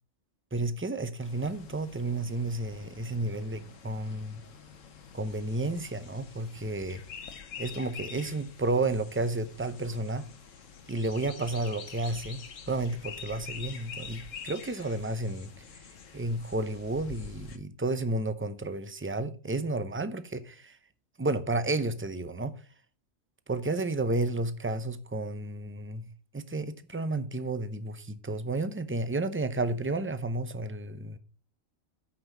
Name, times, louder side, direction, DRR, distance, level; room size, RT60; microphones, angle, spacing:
voice 1, 0.5-4.4 5.1-7.0 7.6-10.2 10.9-12.4 12.7-15.5 16.1-20.8 21.2-22.5 23.5-26.1 26.3-31.2, right 2 dB, 15° right, 0.4 m, -31 dB
sound 1, 1.2-17.6, left 6 dB, 75° left, 1.4 m, -46 dB
8.6 x 5.6 x 5.9 m
omnidirectional pair, 1.4 m